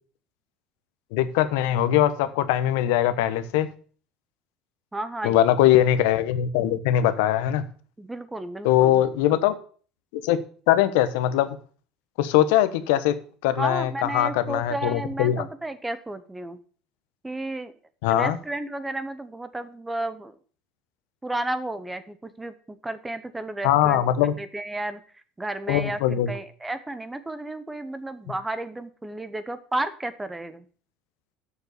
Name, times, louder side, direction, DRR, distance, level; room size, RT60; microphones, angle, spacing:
voice 1, 1.1-3.7 5.2-7.6 8.6-9.5 10.1-10.4 10.7-11.5 12.2-13.1 13.4-15.4 18.0-18.4 23.6-24.3 25.7-26.3, left 12 dB, 85° left, 12 dB, 1.0 m, -21 dB
voice 2, 4.9-5.4 8.0-9.0 13.5-16.6 17.2-17.7 18.1-20.4 21.2-30.6, right 1 dB, 10° right, 12 dB, 0.9 m, -32 dB
7.1 x 6.8 x 6.6 m, 0.43 s
cardioid pair, 130°, 0 cm